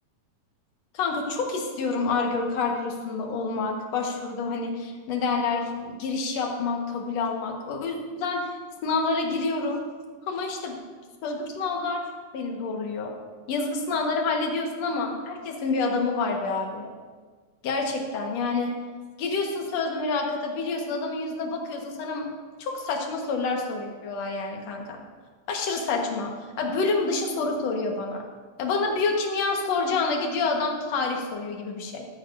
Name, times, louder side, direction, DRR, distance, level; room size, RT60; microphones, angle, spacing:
voice 1, 0.9-8.4 8.8-9.8 10.3-10.8 11.2-12.0 12.3-13.1 13.5-16.9 17.6-18.7 19.2-22.3 22.6-25.0 25.5-26.3 26.6-28.2 28.6-32.1, left 4 dB, 55° left, 1 dB, 2.2 m, -28 dB
14.5 x 13.0 x 2.6 m, 1.5 s
omnidirectional pair, 4.0 m